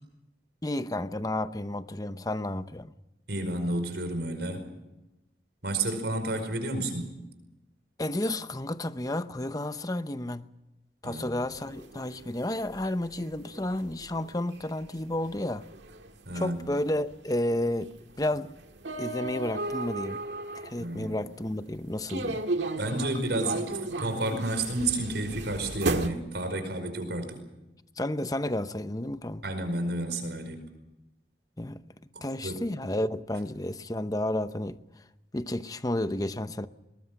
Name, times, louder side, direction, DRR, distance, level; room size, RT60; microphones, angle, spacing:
voice 1, 0.6-2.9 8.0-10.4 11.0-15.6 16.3-17.9 18.2-18.5 19.0-20.2 20.5-22.4 28.0-29.4 31.6-31.8 32.2-34.8 35.3-36.7, left 1 dB, 20° left, 0.8 m, -31 dB
voice 2, 3.3-4.6 5.6-7.1 11.0-11.3 16.2-16.6 20.8-21.2 22.8-27.4 29.4-30.6 32.1-32.7, right 2 dB, 70° right, 5.1 m, -31 dB
sound 1, 11.5-21.4 22.1-26.1, right 2 dB, 90° right, 1.9 m, -35 dB
21.5 x 19.5 x 7.8 m
head